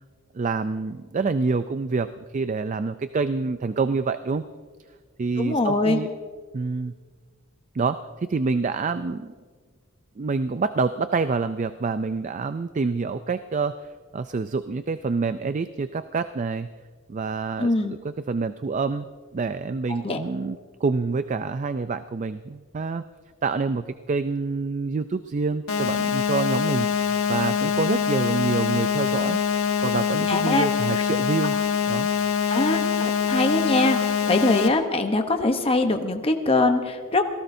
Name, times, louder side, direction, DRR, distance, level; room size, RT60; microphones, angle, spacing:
voice 1, 0.3-4.4 5.2-6.1 6.5-6.9 7.7-9.3 10.2-16.7 17.1-19.1 19.3-23.0 23.4-29.4 29.8-31.6 31.9-32.1, right 4 dB, 35° right, 11 dB, 0.3 m, -27 dB
voice 2, 5.4-6.0 17.6-18.0 20.0-20.2 30.3-30.7 32.5-37.2, left 2 dB, 25° left, 5 dB, 0.9 m, -23 dB
sound 1, 25.7-34.7, left 7 dB, 70° left, 1.4 m, -24 dB
26.5 x 17.5 x 2.7 m, 1.5 s
head